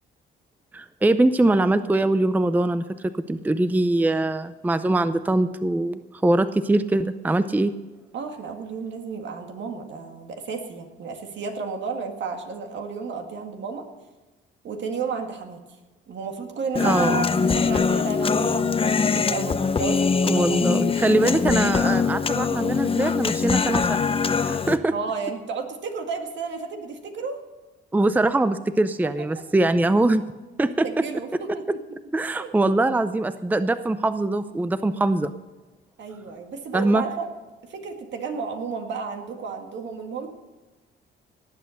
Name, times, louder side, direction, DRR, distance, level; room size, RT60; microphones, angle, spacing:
voice 1, 0.7-7.7 16.8-17.3 20.2-24.0 24.4-24.9 27.9-30.2 30.6-31.0 32.1-35.3 36.7-37.0, right 2 dB, 10° right, 12 dB, 0.5 m, -22 dB
voice 2, 8.1-13.9 14.6-15.6 16.1-20.6 24.9-27.4 29.2-29.3 30.8-31.5 32.4-32.5 36.0-37.3 37.6-40.3, right 5 dB, 65° right, 4 dB, 2.0 m, -32 dB
Human voice, 16.8-24.8, left 5 dB, 30° left, 0.7 m, -22 dB
18.0 x 8.0 x 6.5 m, 1.2 s
cardioid pair, 90°, 20 cm